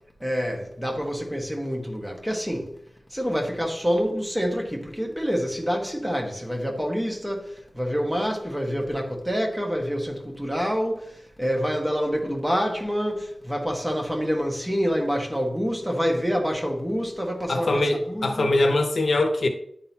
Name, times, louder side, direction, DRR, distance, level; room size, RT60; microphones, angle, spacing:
voice 1, 0.2-2.7 3.1-18.5, equal, 5° right, 1.3 m, -27 dB
voice 2, 17.5-19.5, left 2 dB, 60° left, 0.8 m, -22 dB
10.5 x 3.9 x 2.9 m
wide cardioid pair, 105°, 0 cm